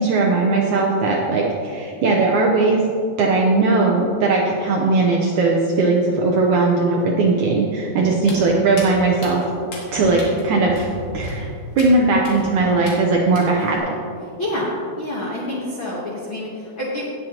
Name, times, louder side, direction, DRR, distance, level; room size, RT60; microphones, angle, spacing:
voice 1, 0.0-2.8 3.2-9.4 9.9-10.9 11.1-11.5 11.8-13.8, right 3 dB, 80° right, -1 dB, 1.8 m, -18 dB
Walk footsteps, 8.2-13.8, left 1 dB, 55° left, 3.1 m, -35 dB
voice 2, 14.4-17.0, left 1 dB, 75° left, -4 dB, 1.1 m, -27 dB
18.0 x 7.9 x 2.9 m, 2.5 s
omnidirectional pair, 4.4 m